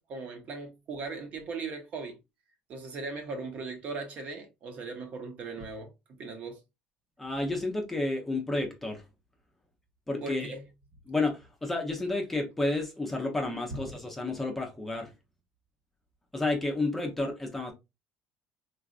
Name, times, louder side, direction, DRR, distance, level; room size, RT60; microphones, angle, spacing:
voice 1, 0.1-2.2 2.7-5.9 6.2-6.6 10.2-10.6, right 4 dB, 45° right, 0.9 m, -38 dB
voice 2, 7.2-9.0 10.1-10.6 11.1-15.1 16.3-17.7, left 2 dB, 5° left, 0.6 m, -31 dB
3.9 x 2.4 x 2.4 m
cardioid pair, 150°, 3 cm